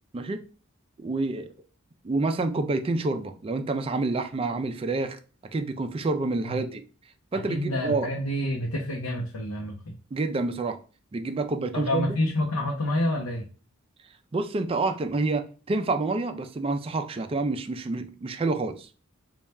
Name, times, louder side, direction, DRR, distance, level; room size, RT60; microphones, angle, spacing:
voice 1, 1.0-1.5 2.0-5.2 5.5-6.8 7.3-8.1 10.1-10.8 11.1-12.2 14.3-18.9, right 3 dB, 25° right, 7 dB, 0.3 m, -28 dB
voice 2, 7.3-9.9 11.7-13.4, left 1 dB, 90° left, -1 dB, 0.7 m, -28 dB
3.3 x 2.3 x 4.1 m, 0.37 s
head